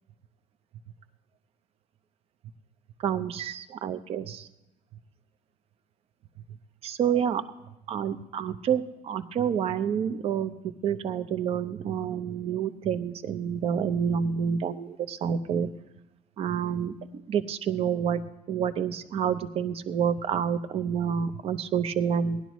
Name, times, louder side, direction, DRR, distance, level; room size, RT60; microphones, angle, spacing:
voice 1, 3.0-4.5 6.8-7.4 7.9-10.5 10.8-15.7 16.4-16.9 17.3-18.2 18.5-22.4, right 8 dB, 45° right, 11 dB, 0.6 m, -28 dB
18.0 x 11.0 x 3.1 m, 0.90 s
cardioid pair, 150°, 14 cm